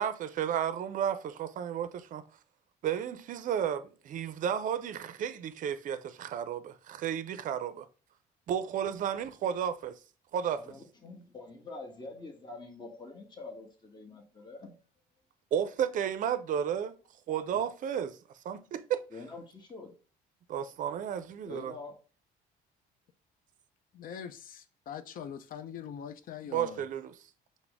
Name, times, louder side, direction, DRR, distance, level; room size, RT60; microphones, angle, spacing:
voice 1, 0.0-2.2 2.8-7.9 8.5-10.0 10.3-10.6 15.5-16.9 17.3-18.2 18.4-19.0 20.5-21.7 26.5-27.1, right 9 dB, 50° right, 0.5 m, -32 dB
voice 2, 10.5-14.7 17.3-17.6 19.1-19.9 21.4-21.9, left 3 dB, 25° left, 1.2 m, -46 dB
voice 3, 23.9-26.9, left 8 dB, 55° left, 0.5 m, -42 dB
5.9 x 2.1 x 3.4 m
cardioid pair, 110°, 17 cm